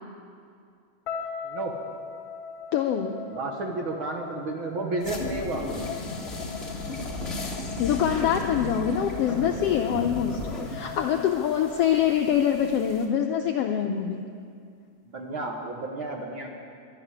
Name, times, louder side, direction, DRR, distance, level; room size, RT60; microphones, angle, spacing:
sound 1, 1.1-13.2, left 6 dB, 45° left, 2.4 m, -41 dB
voice 1, 2.7-3.2 5.9-6.0 7.8-14.2, left 9 dB, 85° left, 4 dB, 1.4 m, -25 dB
voice 2, 3.3-5.7 15.1-16.5, right 2 dB, 55° right, 1 dB, 1.6 m, -32 dB
sound 2, 5.0-13.0, left 2 dB, 25° left, 1.4 m, -35 dB
12.0 x 11.5 x 9.7 m, 2.3 s
omnidirectional pair, 3.5 m